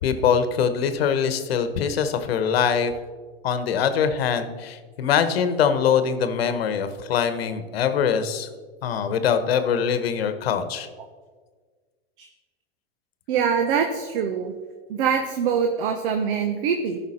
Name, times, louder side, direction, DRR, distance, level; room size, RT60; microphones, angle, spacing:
voice 1, 0.0-2.9 3.4-8.5 8.8-10.9, left 7 dB, 75° left, 10 dB, 1.1 m, -23 dB
voice 2, 13.3-14.5 14.9-17.0, right 7 dB, 60° right, 6 dB, 1.0 m, -24 dB
14.0 x 5.9 x 4.3 m, 1.5 s
hypercardioid pair, 115°, 30 cm